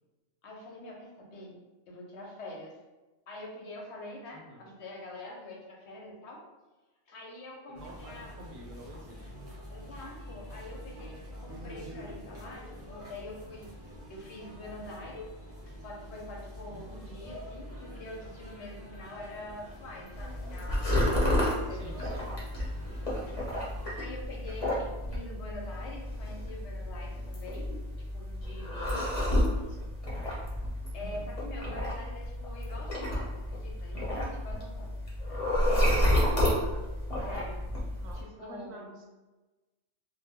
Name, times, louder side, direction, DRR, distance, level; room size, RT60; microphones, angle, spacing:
voice 1, 0.4-1.5 1.9-2.7 3.3-6.4 7.1-8.3 9.7-13.7 14.1-15.3 15.7-22.2 23.1-23.5 23.9-27.8 28.1-29.2 30.9-36.5 37.3-37.6 38.1-38.9, left 1 dB, 65° left, -1 dB, 0.8 m, -45 dB
voice 2, 4.3-4.7 7.7-9.5 16.7-17.1 21.7-22.4 29.2-29.9 31.0-31.3 36.2-36.9 38.0-39.1, right 1 dB, 80° right, 1 dB, 1.0 m, -49 dB
sound 1, 7.7-24.0, equal, 25° right, 0.3 m, -46 dB
sound 2, 20.1-38.2, left 1 dB, 35° left, 0.6 m, -31 dB
2.1 x 2.0 x 3.4 m, 1.2 s
omnidirectional pair, 1.3 m